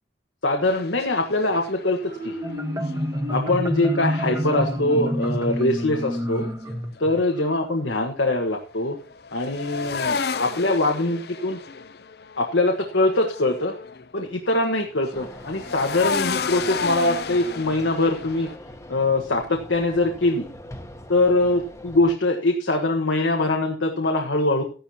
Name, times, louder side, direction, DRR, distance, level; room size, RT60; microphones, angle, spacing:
voice 1, 0.4-2.4 3.3-6.4 7.0-9.0 9.3-11.6 12.4-13.7 14.1-18.5 18.9-20.5 21.1-24.6, left 2 dB, 90° left, 2 dB, 1.4 m, -23 dB
sound 1, 0.6-3.5 4.4-7.0 8.7-14.2 14.5-18.6, left 5 dB, 60° left, 0.6 m, -33 dB
Marimba xylophone, 2.1-7.6, equal, 15° right, 1.2 m, -27 dB
sound 2, 15.1-22.2, left 1 dB, 15° left, 1.1 m, -43 dB
13.5 x 11.0 x 2.9 m, 0.37 s
head